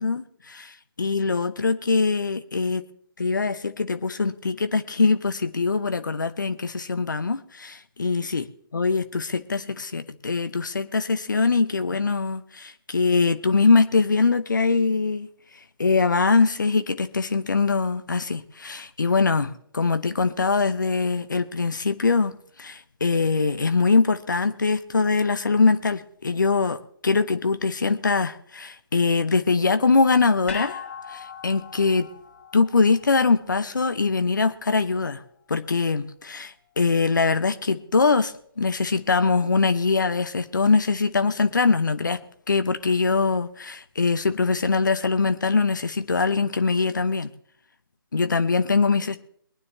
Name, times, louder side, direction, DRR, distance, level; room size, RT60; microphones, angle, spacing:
voice 1, 0.0-2.8 3.2-8.5 8.7-15.3 15.8-22.3 22.6-30.8 31.1-32.1 32.5-35.2 35.5-42.2 42.5-47.3 48.1-49.2, left 4 dB, 55° left, 11 dB, 0.9 m, -22 dB
sound 1, 30.5-34.8 35.1-35.2, left 7 dB, 35° left, 6.7 m, -40 dB
23.0 x 9.6 x 3.3 m, 0.63 s
figure-of-eight pair, 145°, 12 cm